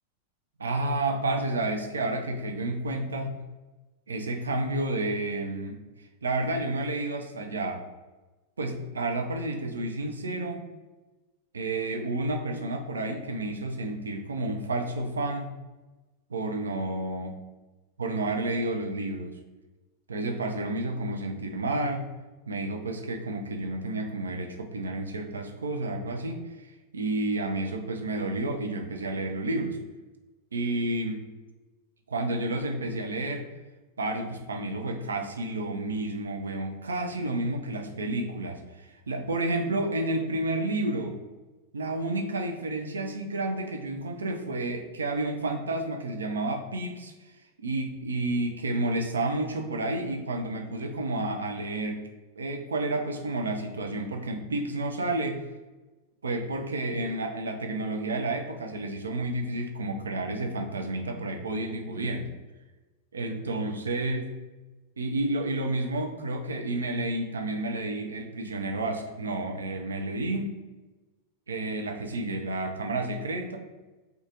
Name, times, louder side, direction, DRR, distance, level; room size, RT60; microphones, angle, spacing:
voice 1, 0.6-3.4 4.1-5.8 6.2-7.8 8.6-10.7 11.5-15.5 16.3-17.3 18.0-19.4 20.1-22.1 22.5-26.7 26.9-29.8 30.5-31.2 32.1-33.5 34.0-41.2 41.7-47.1 47.6-52.1 52.4-55.4 56.2-62.3 63.1-64.2 65.0-70.6 71.5-73.6, right 2 dB, 70° right, 3 dB, 0.3 m, -30 dB
2.4 x 2.3 x 2.8 m, 1.2 s
figure-of-eight pair, 90°, 0 cm